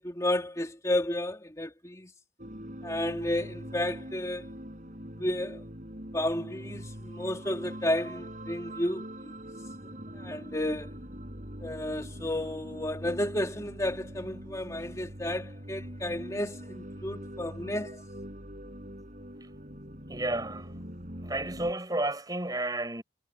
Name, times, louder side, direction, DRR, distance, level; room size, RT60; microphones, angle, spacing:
voice 1, 0.0-2.1 2.8-4.5 5.2-5.6 6.1-9.3 10.1-11.0 11.6-17.9, left 1 dB, 20° left, 3.1 m, -32 dB
sound 1, 2.4-21.7, equal, 45° right, 5.9 m, -43 dB
voice 2, 20.1-20.7 21.2-23.0, right 1 dB, 20° right, 6.5 m, -31 dB
head